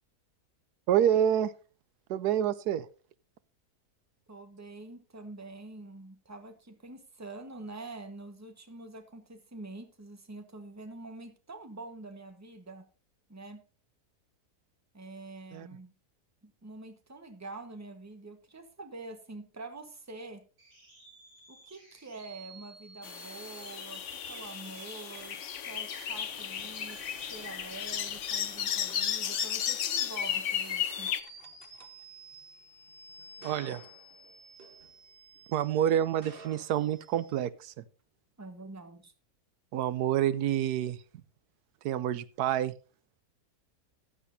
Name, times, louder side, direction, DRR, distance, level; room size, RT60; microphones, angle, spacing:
voice 1, 0.9-1.5 2.1-2.9 15.5-15.7 33.4-33.8 35.5-37.8 39.7-41.0 41.8-42.7, right 10 dB, 85° right, 17 dB, 1.2 m, -28 dB
voice 2, 4.3-12.9 13.3-13.6 14.9-15.9 16.4-20.4 21.5-25.4 25.6-27.0 27.3-31.1 38.4-39.1, right 2 dB, 10° right, 6 dB, 1.2 m, -46 dB
sound 1, 20.6-37.3, right 1 dB, 70° right, 5.3 m, -51 dB
sound 2, 23.0-31.2, left 9 dB, 60° left, 1.0 m, -34 dB
sound 3, 25.1-35.5 36.1-37.6, right 4 dB, 40° right, 1.4 m, -55 dB
14.5 x 10.0 x 2.7 m, 0.35 s
omnidirectional pair, 1.6 m